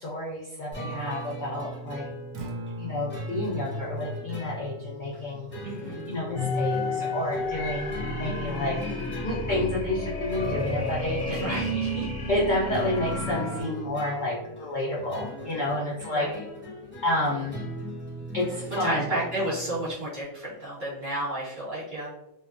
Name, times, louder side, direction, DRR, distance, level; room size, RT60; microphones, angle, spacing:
voice 1, 0.0-2.1 2.8-5.5 6.1-8.8 9.2-11.4 12.3-16.3 17.0-17.6 18.3-19.1, left 1 dB, 80° left, -6 dB, 0.4 m, -30 dB
sound 1, 0.7-19.9, right 1 dB, 15° left, 0.5 m, -39 dB
Acoustic guitar, 2.3-10.4, left 2 dB, 70° right, 1.0 m, -43 dB
voice 2, 5.6-6.1 11.3-12.1 16.1-16.4 18.8-22.1, right 1 dB, 45° right, -7 dB, 1.1 m, -32 dB
sound 2, 6.3-13.6, left 2 dB, 65° left, 0.8 m, -31 dB
2.6 x 2.2 x 2.4 m, 0.90 s
omnidirectional pair, 1.5 m